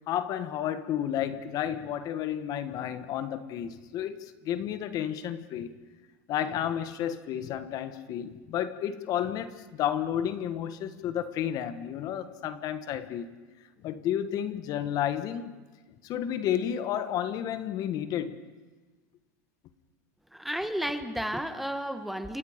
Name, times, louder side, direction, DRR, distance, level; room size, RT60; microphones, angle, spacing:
voice 1, 0.1-5.7 6.3-13.3 13.8-15.5 16.0-18.4, left 10 dB, 50° left, 1.3 m, -31 dB
voice 2, 20.3-22.4, equal, ahead, 1.5 m, -32 dB
28.5 x 25.5 x 5.1 m
supercardioid pair, 110°, 8 cm